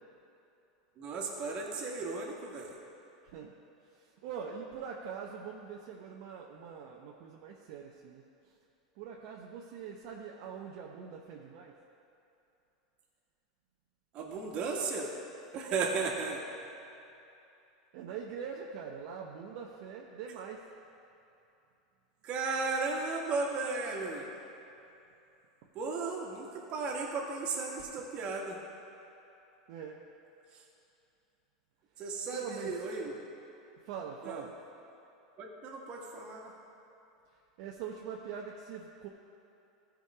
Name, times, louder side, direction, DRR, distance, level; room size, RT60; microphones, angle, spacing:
voice 1, 1.0-2.7 14.1-15.1 15.5-16.4 22.2-24.2 25.8-28.6 32.0-33.2 34.2-34.4 35.4-36.5, right 4 dB, 45° right, -1 dB, 1.8 m, -35 dB
voice 2, 4.0-8.2 9.0-11.7 17.9-20.6 29.7-30.0 32.3-32.8 33.8-34.6 37.6-39.1, right 7 dB, 60° right, -1 dB, 0.8 m, -43 dB
14.5 x 5.2 x 4.9 m, 2.8 s
hypercardioid pair, 100°, 3 cm